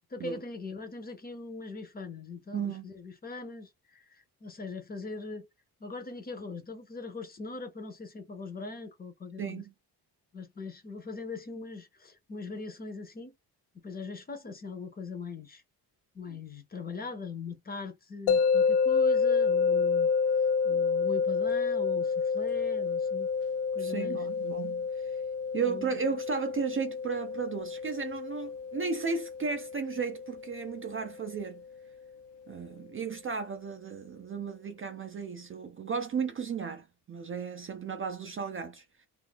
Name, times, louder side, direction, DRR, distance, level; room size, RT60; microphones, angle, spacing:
voice 1, 0.1-5.5 5.8-9.6 10.3-13.3 13.8-15.6 16.1-20.1 20.6-23.3 23.7-24.2 25.6-25.9, left 3 dB, 25° left, 0.6 m, -41 dB
voice 2, 2.5-2.9 9.4-9.7 23.8-25.2 25.5-31.6 32.5-38.8, right 5 dB, 35° right, 0.4 m, -34 dB
sound 1, 18.3-31.3, left 5 dB, 85° left, 0.6 m, -29 dB
2.5 x 2.4 x 3.6 m
cardioid pair, 175°, 40 cm